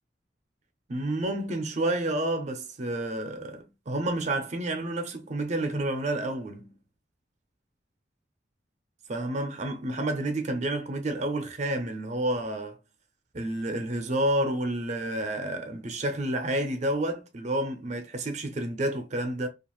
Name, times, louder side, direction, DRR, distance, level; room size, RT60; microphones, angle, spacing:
voice 1, 0.9-6.7 9.1-12.8 13.3-19.5, right 1 dB, 40° right, 0.5 m, -30 dB
2.5 x 2.4 x 2.9 m
head